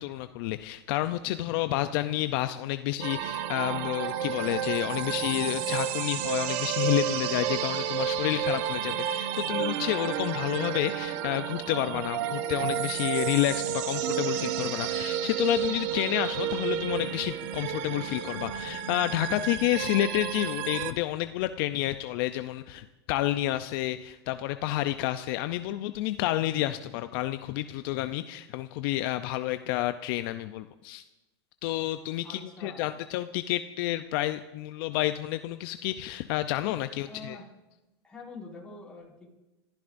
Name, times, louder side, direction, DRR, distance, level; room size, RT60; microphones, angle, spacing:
voice 1, 0.0-31.0 31.6-37.4, left 15 dB, 55° left, 10 dB, 0.6 m, -30 dB
sound 1, 3.0-20.9, right 9 dB, 55° right, 1.0 m, -31 dB
voice 2, 32.2-32.9 37.0-37.5 38.0-39.3, left 3 dB, 5° left, -4 dB, 5.3 m, -45 dB
29.0 x 15.0 x 2.6 m, 1.1 s
supercardioid pair, 125°, 14 cm